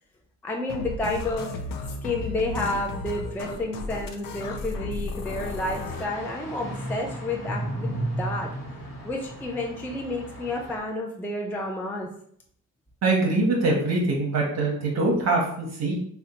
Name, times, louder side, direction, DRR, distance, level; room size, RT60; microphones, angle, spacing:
voice 1, 0.4-1.5 2.0-8.5 9.0-12.1, left 2 dB, 5° left, 0 dB, 0.3 m, -30 dB
sound 1, 0.7-6.1, left 3 dB, 90° left, 0.5 m, -34 dB
sound 2, 5.2-10.8, right 1 dB, 55° left, 0.8 m, -35 dB
voice 2, 13.0-15.9, right 2 dB, 55° right, -2 dB, 0.7 m, -23 dB
2.7 x 2.1 x 4.0 m, 0.66 s
cardioid pair, 105°, 32 cm